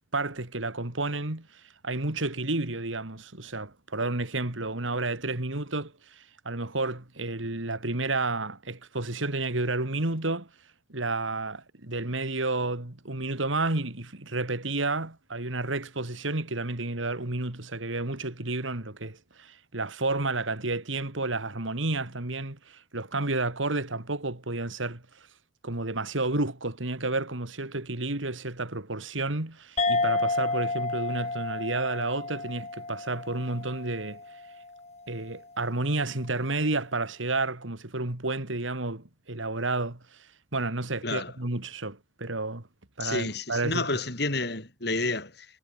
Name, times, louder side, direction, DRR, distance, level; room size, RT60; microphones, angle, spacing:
voice 1, 0.1-1.5 1.8-10.5 10.9-25.0 25.6-34.2 35.1-40.0 40.5-42.6 43.0-43.9, right 2 dB, 85° right, 2.8 m, -31 dB
sound 1, 29.8-34.7, left 3 dB, 35° left, 3.3 m, -31 dB
voice 2, 43.0-45.5, left 3 dB, 55° left, 6.6 m, -30 dB
head